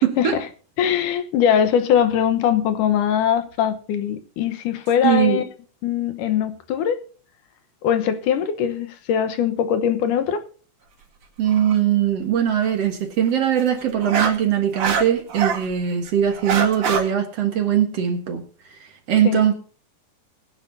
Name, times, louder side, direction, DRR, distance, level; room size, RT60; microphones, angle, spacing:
voice 1, 0.0-0.4 5.0-5.4 11.4-18.5 19.1-19.5, right 9 dB, 55° right, 2.2 m, -20 dB
voice 2, 0.8-5.4 5.8-7.0 7.8-10.4 19.2-19.4, left 9 dB, 75° left, 2.6 m, -21 dB
sound 1, 11.5-11.8 13.6-15.7 16.1-17.0, right 5 dB, 80° right, 4.0 m, -24 dB
21.0 x 9.9 x 2.7 m
omnidirectional pair, 3.8 m